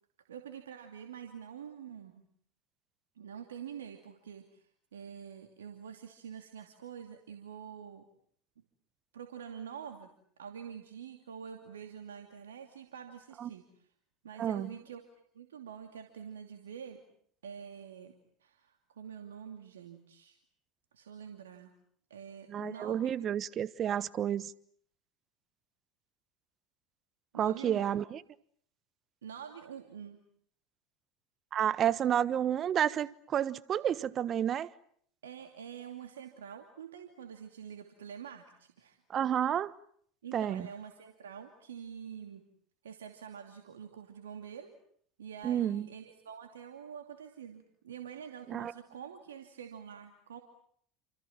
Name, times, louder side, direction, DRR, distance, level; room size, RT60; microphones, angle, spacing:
voice 1, 0.3-2.3 3.2-8.0 9.1-10.1 10.4-13.9 14.2-15.0 15.3-17.0 17.4-18.1 18.4-20.4 20.9-21.7 22.1-23.4 27.3-28.0 29.2-30.2 35.2-39.0 40.2-42.5 42.8-44.7 45.2-50.4, right 8 dB, 85° right, 2.7 m, -46 dB
voice 2, 14.4-14.7 22.5-24.5 27.4-28.2 31.5-34.7 39.1-39.7 40.3-40.7 45.4-45.9 48.5-48.7, right 10 dB, 40° right, 1.2 m, -30 dB
29.5 x 27.0 x 7.4 m
hypercardioid pair, 80°, 0 cm